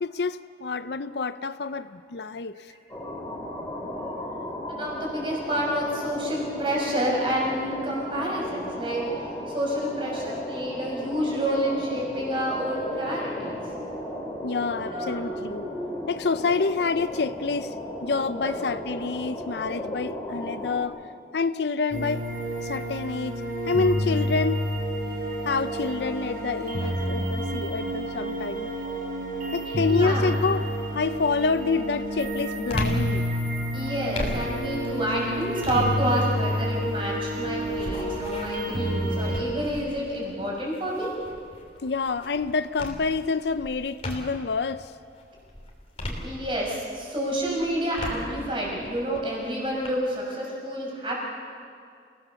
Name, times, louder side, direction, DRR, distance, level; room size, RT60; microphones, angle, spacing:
voice 1, 0.0-2.7 14.4-15.6 16.1-17.8 18.0-21.0 21.3-22.2 22.6-23.4 23.7-24.6 25.4-28.7 29.5-30.7 30.9-33.3 41.8-44.9, left 4 dB, 65° left, 0.5 m, -27 dB
sound 1, 2.9-20.8, equal, 15° left, 3.7 m, -35 dB
voice 2, 4.7-9.1 9.5-13.6 14.9-15.2 18.4-18.6 26.8-26.9 29.7-30.3 33.7-41.1 46.0-51.2, right 1 dB, 30° right, 6.0 m, -29 dB
sound 2, 21.9-39.4, equal, 50° right, 3.9 m, -29 dB
sound 3, 30.4-30.6 31.1-44.6 45.0-46.9 47.3-49.9, left 1 dB, 35° left, 3.2 m, -38 dB
28.5 x 17.5 x 7.0 m
head